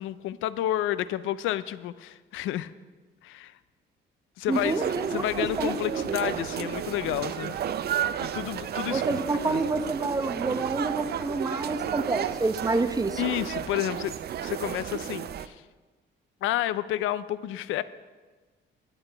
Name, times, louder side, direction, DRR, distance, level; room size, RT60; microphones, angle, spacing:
voice 1, 0.0-2.7 3.2-3.6 4.4-4.8 5.1-7.6 8.2-9.0 9.5-9.6 13.2-14.1 14.4-15.6 16.4-17.8, left 13 dB, 90° left, 16 dB, 0.4 m, -30 dB
voice 2, 4.5-6.2 6.6-6.7 8.9-13.2, right 3 dB, 20° right, 9 dB, 0.7 m, -28 dB
sound 1, 4.5-15.5, right 9 dB, 55° right, 0.5 m, -32 dB
14.5 x 9.9 x 3.4 m, 1.3 s
cardioid pair, 90°, 20 cm